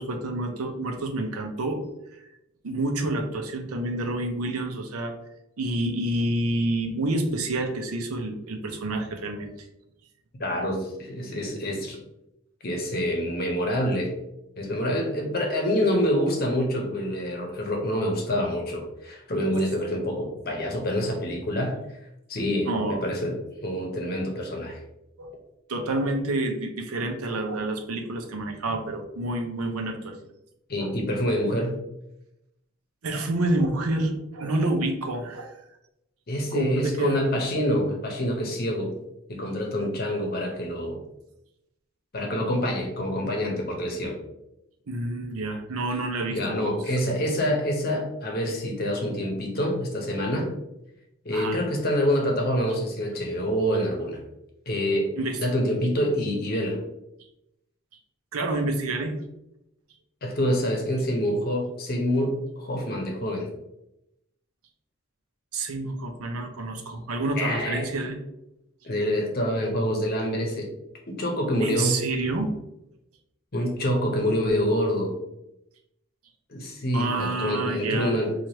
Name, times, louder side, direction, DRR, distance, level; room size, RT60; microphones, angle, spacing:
voice 1, 0.0-1.8 2.6-5.1 5.6-9.5 22.7-23.0 25.2-25.3 25.7-30.2 30.8-30.9 33.0-35.6 36.5-37.2 44.9-46.7 51.3-51.6 55.2-55.4 58.3-59.1 65.5-68.2 71.6-72.5 76.9-78.1, right 2 dB, 90° right, 5 dB, 0.6 m, -28 dB
voice 2, 10.4-12.0 12.6-14.1 14.6-21.8 22.3-24.8 30.7-31.8 36.3-38.9 39.3-41.0 42.1-44.1 46.3-50.5 51.2-54.2 54.7-55.1 55.4-56.8 60.2-63.5 67.4-67.9 68.8-70.7 71.1-72.0 73.5-75.2 76.5-78.3, equal, 45° left, 1 dB, 0.8 m, -26 dB
4.6 x 2.4 x 2.9 m, 0.86 s
head